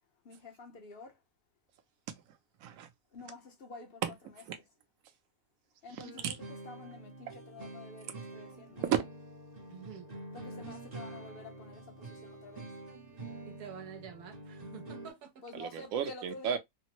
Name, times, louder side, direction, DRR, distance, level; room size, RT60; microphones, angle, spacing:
voice 1, 0.2-1.2 3.1-4.0 5.8-6.4 6.6-8.8 10.3-12.7 15.4-16.6, left 3 dB, 50° left, 0.8 m, -49 dB
voice 2, 2.1-2.9 4.0-4.6 5.9-6.4 8.8-9.1 15.5-16.6, right 9 dB, 70° right, 1.0 m, -34 dB
sound 1, 6.0-15.1, right 2 dB, 35° right, 0.7 m, -47 dB
voice 3, 9.7-10.1 13.5-15.4, right 8 dB, 85° right, 1.2 m, -48 dB
3.4 x 2.0 x 2.8 m
omnidirectional pair, 1.6 m